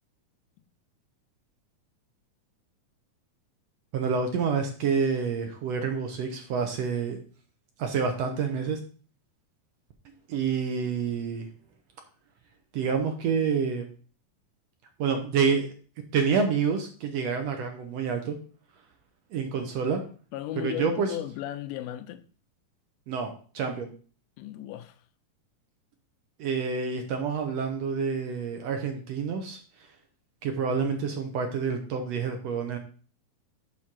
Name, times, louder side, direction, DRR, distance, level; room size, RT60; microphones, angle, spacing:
voice 1, 3.9-7.2 7.8-8.8 10.3-11.5 12.7-13.9 15.0-15.7 16.1-18.4 19.3-20.0 20.6-21.2 23.1-23.9 26.4-29.6 30.4-32.8, right 5 dB, 70° right, 1.7 m, -28 dB
voice 2, 20.3-22.2 24.4-25.0, left 13 dB, 85° left, 2.2 m, -36 dB
7.5 x 4.1 x 6.1 m
omnidirectional pair, 3.6 m